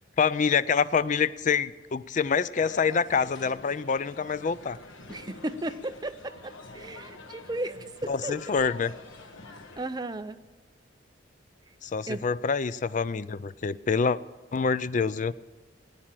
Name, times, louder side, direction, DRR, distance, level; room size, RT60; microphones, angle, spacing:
voice 1, 0.2-4.8 8.1-8.9 11.8-14.2 14.5-15.3, left 5 dB, 40° left, 16 dB, 0.4 m, -26 dB
sound 1, 2.5-9.9, left 3 dB, 85° left, 1.4 m, -47 dB
voice 2, 5.1-8.5 9.8-10.4 12.1-12.2, right 2 dB, 20° right, 9 dB, 0.5 m, -35 dB
16.0 x 9.8 x 7.5 m, 1.3 s
head